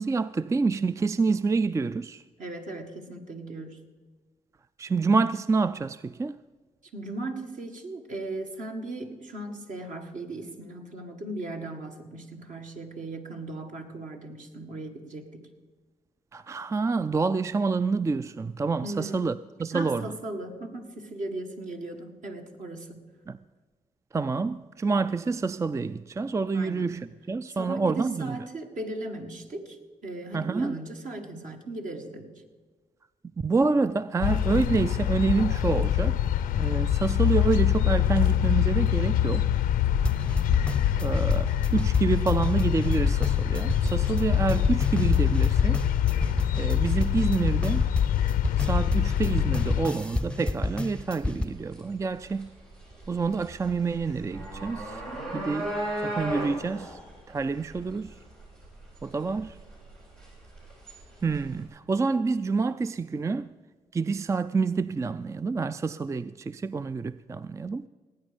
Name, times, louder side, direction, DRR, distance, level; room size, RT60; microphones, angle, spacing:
voice 1, 0.0-2.2 4.8-6.4 16.3-19.3 19.6-20.1 23.3-23.4 24.1-28.4 30.3-30.8 33.4-36.2 36.6-39.5 41.0-45.8 46.6-47.9 48.6-52.5 53.1-55.0 55.3-55.7 56.0-57.0 57.3-58.1 59.0-59.6 61.2-63.5 63.9-67.9, right 4 dB, 20° right, 0.3 m, -27 dB
voice 2, 2.4-3.8 6.9-15.5 18.8-19.3 19.7-23.1 26.5-27.0 27.5-32.3, right 2 dB, 60° right, 1.8 m, -37 dB
sound 1, 34.2-49.9, left 11 dB, 90° left, 0.6 m, -25 dB
sound 2, 40.1-51.4, left 2 dB, 10° left, 0.7 m, -30 dB
sound 3, 48.5-61.7, right 1 dB, 80° right, 4.8 m, -38 dB
18.5 x 8.9 x 5.1 m
supercardioid pair, 55°, 15 cm